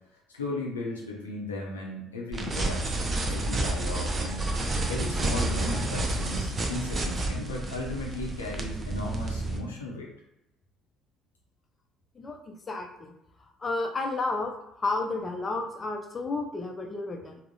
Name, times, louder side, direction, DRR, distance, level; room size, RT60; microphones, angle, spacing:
voice 1, 0.3-4.5 4.9-10.1, left 2 dB, 80° left, -2 dB, 0.5 m, -36 dB
sound 1, 2.3-9.6, right 2 dB, 30° right, 0.5 m, -30 dB
voice 2, 12.2-13.1 13.6-14.5 14.8-17.4, left 3 dB, 30° left, 3 dB, 0.4 m, -31 dB
3.5 x 2.0 x 2.7 m, 0.88 s
figure-of-eight pair, 55°, 0 cm